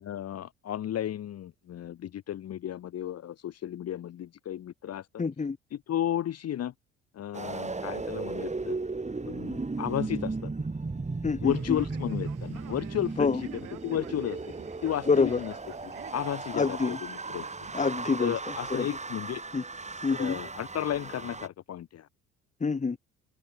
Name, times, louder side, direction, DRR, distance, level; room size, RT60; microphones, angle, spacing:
voice 1, 0.0-5.1 5.7-6.7 7.1-8.8 9.2-10.5 11.4-13.3 13.8-14.4 14.8-15.5 15.8-17.4 18.2-19.4 20.2-22.1, left 11 dB, 45° left, 1.4 m, -33 dB
voice 2, 5.2-5.6 11.2-11.8 13.2-13.4 15.1-15.4 16.5-17.0 17.7-18.3 18.7-19.0 19.5-19.6 20.0-20.4 22.6-23.0, left 4 dB, 20° left, 1.7 m, -26 dB
sound 1, 7.3-21.5, right 3 dB, 20° right, 4.8 m, -36 dB
Male speech man speaking, 11.5-18.8, right 17 dB, 65° right, 5.0 m, -50 dB
open air
hypercardioid pair, 60°, 34 cm